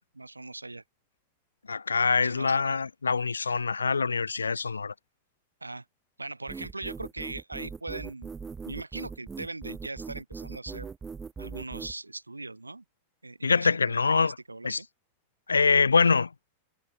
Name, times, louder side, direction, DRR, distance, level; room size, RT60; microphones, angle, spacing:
voice 1, 0.1-0.8 2.1-2.6 5.6-5.8 6.2-8.3 8.6-10.9 11.4-12.8 13.2-14.9, right 2 dB, 80° right, 2.6 m, -40 dB
voice 2, 1.7-4.9 13.4-14.3 14.6-14.8 15.5-16.3, left 4 dB, 75° left, 0.6 m, -24 dB
sound 1, 6.5-11.9, right 5 dB, 15° right, 1.2 m, -40 dB
figure-of-eight pair, 90°, 0 cm